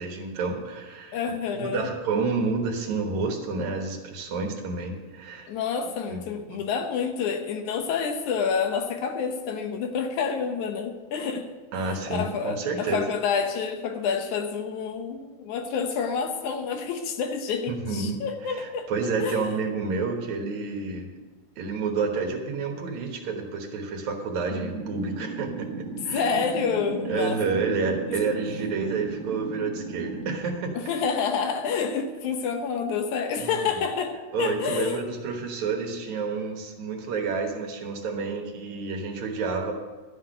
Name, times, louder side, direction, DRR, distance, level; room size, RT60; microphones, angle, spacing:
voice 1, 0.0-1.2 1.5-5.5 6.1-6.2 6.5-6.6 11.7-13.0 17.7-18.2 18.5-21.1 21.6-25.7 26.0-26.3 27.1-30.7 33.4-33.5 34.3-39.7, right 4 dB, 70° right, 3 dB, 2.6 m, -29 dB
voice 2, 1.1-1.9 5.5-11.5 11.8-18.9 19.2-19.4 26.1-27.4 27.7-27.8 28.1-28.2 28.6-28.7 30.7-35.0, left 6 dB, 75° left, 6 dB, 2.3 m, -28 dB
sound 1, 24.5-30.4, right 4 dB, 45° right, 2.3 m, -36 dB
12.5 x 5.8 x 8.9 m, 1.3 s
omnidirectional pair, 3.6 m